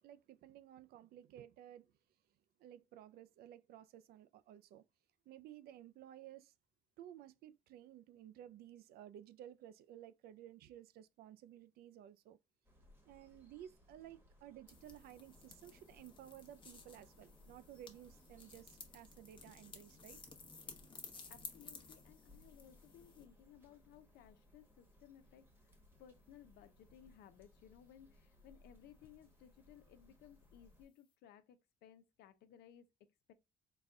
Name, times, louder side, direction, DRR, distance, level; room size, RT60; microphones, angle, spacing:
voice 1, 0.0-1.9 2.6-4.8 5.3-6.5 7.0-12.4 13.1-20.2, right 11 dB, 65° right, 0.4 m, -55 dB
sound 1, 12.6-30.9, left 1 dB, 10° right, 1.1 m, -66 dB
sound 2, 14.7-23.3, left 4 dB, 30° left, 1.0 m, -56 dB
voice 2, 21.3-33.3, left 10 dB, 75° left, 0.6 m, -61 dB
4.1 x 2.2 x 3.5 m
cardioid pair, 110°, 17 cm